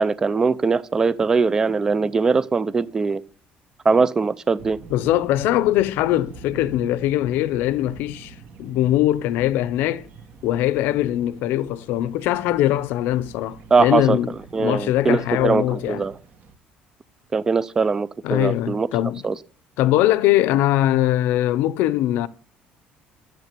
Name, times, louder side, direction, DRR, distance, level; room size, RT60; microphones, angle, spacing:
voice 1, 0.0-3.2 3.8-4.8 13.7-14.2 14.5-16.1 17.3-18.9 19.2-19.4, right 4 dB, 15° right, 0.5 m, -21 dB
sound 1, 4.6-16.5, right 4 dB, 50° right, 2.2 m, -44 dB
voice 2, 4.9-10.1 10.4-14.3 14.6-16.0 18.2-19.2 19.8-22.3, left 14 dB, 75° left, 0.7 m, -21 dB
13.5 x 8.0 x 6.8 m
cardioid pair, 180°, 4 cm